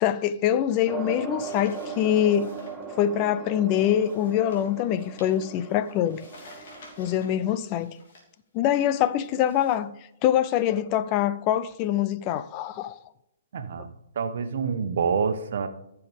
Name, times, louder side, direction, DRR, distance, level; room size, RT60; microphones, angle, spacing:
voice 1, 0.0-2.5 3.0-6.2 7.0-7.9 8.5-9.9 10.2-13.0, left 11 dB, 35° left, 0.5 m, -24 dB
sound 1, 0.9-7.6, right 5 dB, 10° right, 1.5 m, -39 dB
sound 2, 1.4-2.8 3.8-8.3 8.9-9.8, left 2 dB, 55° left, 3.1 m, -52 dB
voice 2, 13.5-13.9 14.1-15.7, right 6 dB, 60° right, 1.1 m, -27 dB
14.5 x 6.9 x 3.5 m
figure-of-eight pair, 125°, 0 cm